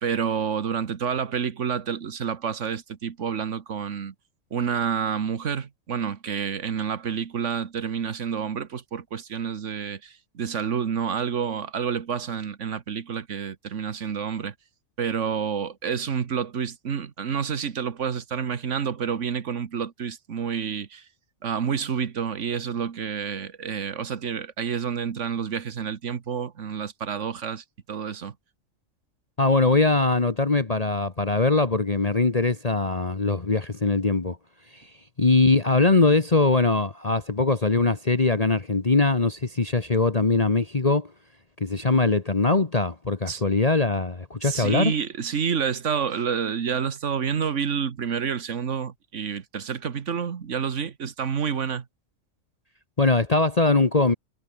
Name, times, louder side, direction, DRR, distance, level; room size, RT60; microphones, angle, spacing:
voice 1, 0.0-4.1 4.5-14.5 15.0-21.1 21.4-28.3 43.3-43.4 44.4-51.9, right 7 dB, 65° right, 1.6 m, -29 dB
voice 2, 29.4-34.4 34.7-34.9 35.2-41.1 41.6-44.9 53.0-54.1, left 3 dB, 30° left, 1.5 m, -21 dB
omnidirectional pair, 1.4 m